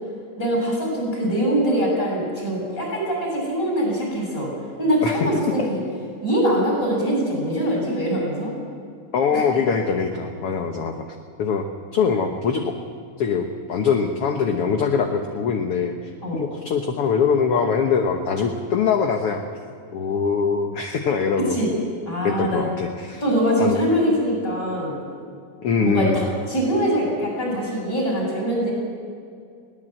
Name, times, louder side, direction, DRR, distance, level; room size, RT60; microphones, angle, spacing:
voice 1, 0.4-4.5 4.8-5.8 6.2-8.5 9.3-9.4 16.2-16.4 21.5-21.7 22.1-22.6 23.2-24.9 25.8-28.7, equal, 25° left, -2 dB, 7.9 m, -23 dB
voice 2, 9.1-11.0 11.4-11.7 11.9-12.8 13.2-19.4 19.9-21.6 22.2-23.2 23.6-23.8 25.6-26.2, left 6 dB, 60° left, 4 dB, 1.7 m, -22 dB
21.5 x 18.0 x 7.8 m, 2.3 s
omnidirectional pair, 3.8 m